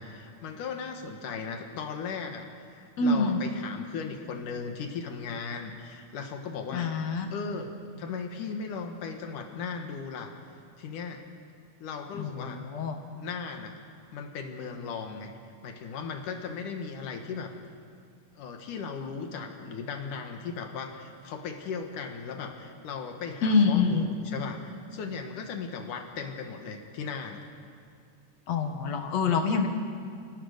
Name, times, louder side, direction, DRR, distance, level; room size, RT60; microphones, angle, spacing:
voice 1, 0.0-7.1 7.3-7.7 8.0-10.3 10.8-11.2 11.8-12.6 13.1-13.8 14.1-15.3 15.6-17.5 18.4-27.4, left 5 dB, 75° left, 4 dB, 3.0 m, -37 dB
voice 2, 3.0-3.4 6.7-7.3 12.2-13.0 23.4-24.0 28.5-29.7, left 4 dB, 60° left, 4 dB, 2.5 m, -25 dB
29.0 x 17.5 x 6.6 m, 2.3 s
omnidirectional pair, 3.7 m